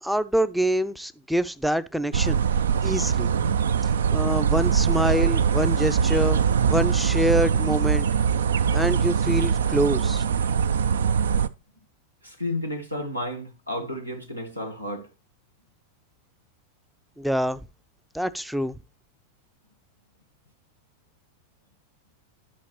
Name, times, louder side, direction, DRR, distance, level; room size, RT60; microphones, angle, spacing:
voice 1, 0.0-2.4 2.8-3.6 4.1-6.4 6.7-8.1 8.7-10.2 17.2-17.6 18.1-18.8, equal, ahead, 0.4 m, -25 dB
sound 1, 2.1-11.5, right 7 dB, 65° right, 0.4 m, -22 dB
voice 2, 12.2-15.1, left 1 dB, 90° right, 1.4 m, -32 dB
11.0 x 5.7 x 3.1 m
figure-of-eight pair, 90°, 0 cm